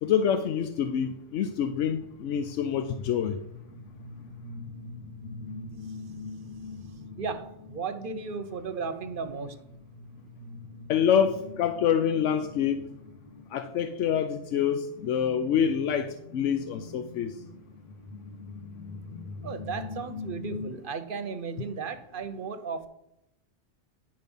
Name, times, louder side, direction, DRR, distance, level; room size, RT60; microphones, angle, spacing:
voice 1, 0.0-3.4 10.9-12.8 13.5-17.4, left 8 dB, 85° left, 1.0 m, -26 dB
sound 1, 1.4-20.7, left 3 dB, 45° left, 1.4 m, -44 dB
voice 2, 7.2-9.6 19.4-22.9, right 5 dB, 50° right, 0.9 m, -35 dB
9.9 x 5.3 x 5.3 m
omnidirectional pair, 1.2 m